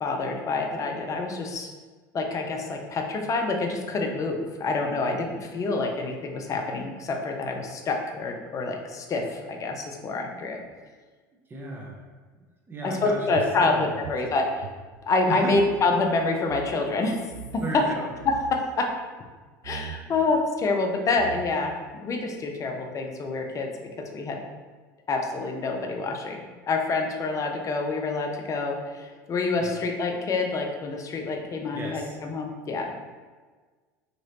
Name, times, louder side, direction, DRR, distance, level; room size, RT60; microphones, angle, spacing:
voice 1, 0.0-1.7 2.1-10.6 12.8-14.7 15.1-17.2 17.5-17.8 18.3-18.9 19.6-23.7 24.1-24.4 25.1-26.4 26.7-32.9, left 3 dB, 35° left, 3 dB, 0.5 m, -27 dB
voice 2, 11.5-12.1 12.7-14.0 15.3-15.6 17.6-18.1 29.6-29.7 31.7-32.2, right 2 dB, 20° right, -2 dB, 0.7 m, -35 dB
sound 1, 13.3-15.8 16.1-16.2 16.4-16.7 17.3-17.8 18.1-18.7 19.6-20.0 20.8-20.9 21.2-21.8, right 9 dB, 70° right, 0.3 m, -41 dB
3.0 x 2.9 x 2.8 m, 1.4 s
hypercardioid pair, 75°, 10 cm